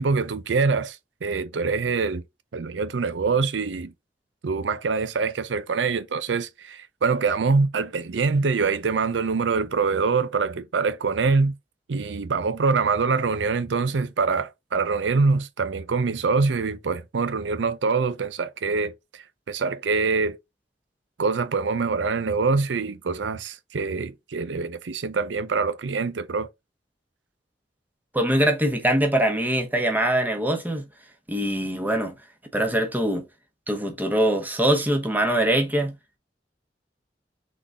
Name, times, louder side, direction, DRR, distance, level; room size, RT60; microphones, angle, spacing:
voice 1, 0.0-2.2 2.5-3.9 4.4-11.5 11.9-18.9 19.5-20.4 21.2-26.5, right 4 dB, 90° right, 0.5 m, -24 dB
voice 2, 28.1-30.8 31.3-32.1 32.5-33.3 33.7-36.0, right 1 dB, 10° right, 1.0 m, -23 dB
3.9 x 3.7 x 3.5 m
head